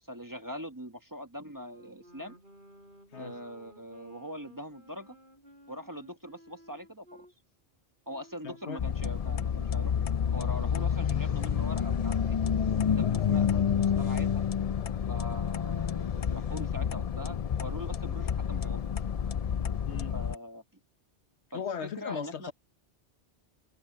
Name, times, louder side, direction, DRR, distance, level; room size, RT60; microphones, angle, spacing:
voice 1, 0.1-2.4 3.1-5.2 5.7-7.3 8.1-10.1 10.3-12.4 12.9-14.4 15.1-19.0 20.1-20.6 21.5-22.5, equal, 20° right, 1.2 m, -42 dB
Wind instrument woodwind instrument, 1.5-7.3 8.1-13.5, equal, 50° right, 5.3 m, -56 dB
voice 2, 8.4-8.9 19.7-20.2 21.5-22.5, left 7 dB, 75° left, 1.3 m, -38 dB
sound 1, 8.8-20.3, left 8 dB, 50° left, 0.4 m, -29 dB
omnidirectional pair, 1.1 m